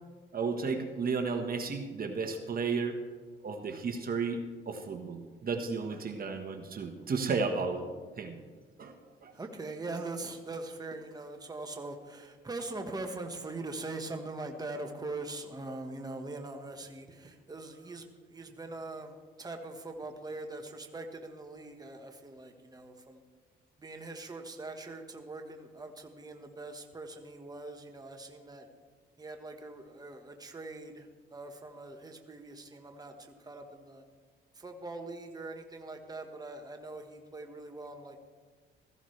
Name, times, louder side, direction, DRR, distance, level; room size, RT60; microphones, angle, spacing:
voice 1, 0.3-3.0 3.4-7.9 8.2-8.4 8.8-8.9 9.2-9.3, right 4 dB, 45° right, 5 dB, 1.3 m, -33 dB
voice 2, 9.3-23.2 23.8-28.7 29.2-34.0 34.6-38.2, right 2 dB, 20° right, 4 dB, 1.3 m, -42 dB
16.0 x 14.5 x 3.2 m, 1.5 s
cardioid pair, 90°, 20 cm